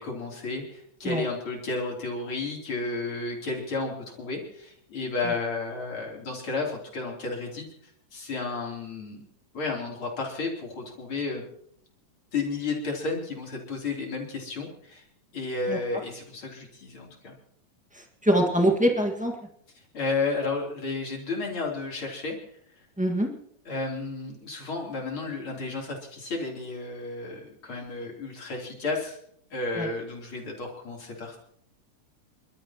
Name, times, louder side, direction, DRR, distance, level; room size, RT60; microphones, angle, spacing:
voice 1, 0.0-7.7 8.1-9.2 9.5-11.5 12.3-15.0 15.3-17.3 19.9-22.4 23.7-29.2 29.5-31.4, left 3 dB, 45° left, -1 dB, 4.0 m, -32 dB
voice 2, 18.2-19.3 23.0-23.3 29.8-29.9, right 1 dB, 5° right, 1 dB, 0.5 m, -23 dB
29.0 x 12.5 x 3.0 m, 0.67 s
omnidirectional pair, 3.4 m